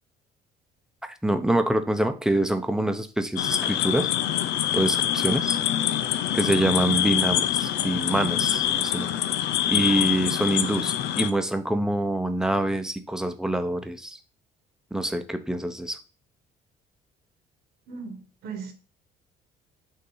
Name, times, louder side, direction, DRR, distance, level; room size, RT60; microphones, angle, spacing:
voice 1, 1.2-4.1 4.7-5.6 6.3-9.1 9.7-14.2 14.9-16.0, right 1 dB, 5° right, 0.8 m, -25 dB
sound 1, 3.4-11.3, left 11 dB, 85° left, 0.7 m, -25 dB
voice 2, 17.9-18.7, right 5 dB, 75° right, 1.5 m, -37 dB
6.7 x 2.8 x 5.5 m
cardioid pair, 110°, 17 cm